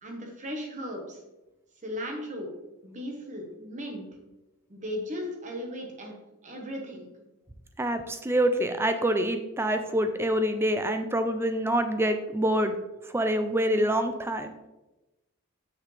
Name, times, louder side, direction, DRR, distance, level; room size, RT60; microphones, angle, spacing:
voice 1, 0.0-1.2 1.8-2.5 2.8-4.0 4.7-6.1 6.4-7.1, equal, 35° right, 1 dB, 1.2 m, -36 dB
voice 2, 7.8-12.7 13.1-14.5, right 1 dB, 10° right, 8 dB, 0.3 m, -26 dB
5.9 x 5.9 x 3.2 m, 1.0 s
head